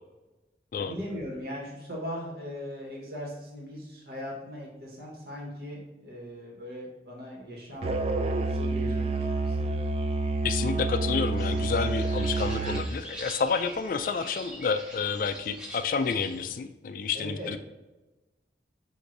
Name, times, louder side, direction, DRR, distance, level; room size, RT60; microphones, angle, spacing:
voice 1, 0.8-9.7 17.1-17.6, equal, 65° right, -3 dB, 1.3 m, -39 dB
Musical instrument, 7.8-13.0, right 2 dB, 35° right, 0.3 m, -28 dB
voice 2, 10.4-17.6, left 5 dB, 50° left, 9 dB, 0.3 m, -29 dB
sound 1, 11.4-16.4, equal, 5° right, 0.9 m, -44 dB
7.7 x 2.6 x 2.6 m, 1.1 s
head